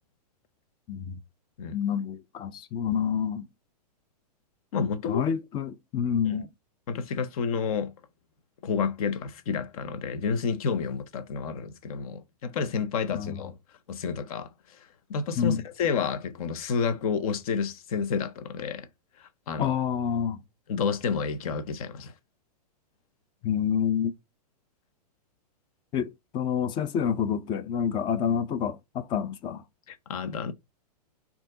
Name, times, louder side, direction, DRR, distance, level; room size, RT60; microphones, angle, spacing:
voice 1, 1.7-3.4 5.1-6.5 13.1-13.4 15.4-15.6 19.6-20.4 23.4-24.1 25.9-29.6, left 8 dB, 25° left, 0.4 m, -28 dB
voice 2, 4.7-5.2 6.2-6.4 6.9-7.9 8.6-13.5 13.9-14.5 15.1-18.9 19.2-19.8 20.7-22.1 29.9-30.5, left 6 dB, 60° left, 0.9 m, -30 dB
4.4 x 2.9 x 3.8 m
hypercardioid pair, 130°, 21 cm